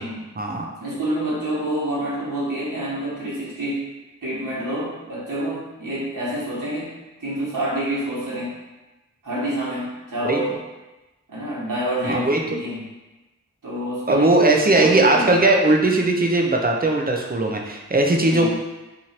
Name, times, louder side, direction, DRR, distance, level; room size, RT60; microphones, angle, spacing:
voice 1, 0.8-3.9 4.2-6.9 7.2-8.6 9.2-10.6 11.3-12.8 13.6-15.4 18.3-18.5, right 1 dB, 75° right, -8 dB, 1.3 m, -27 dB
voice 2, 12.0-12.4 14.1-18.5, right 2 dB, 30° right, 1 dB, 0.6 m, -18 dB
3.0 x 2.6 x 4.3 m, 1.1 s
wide cardioid pair, 40°, 33 cm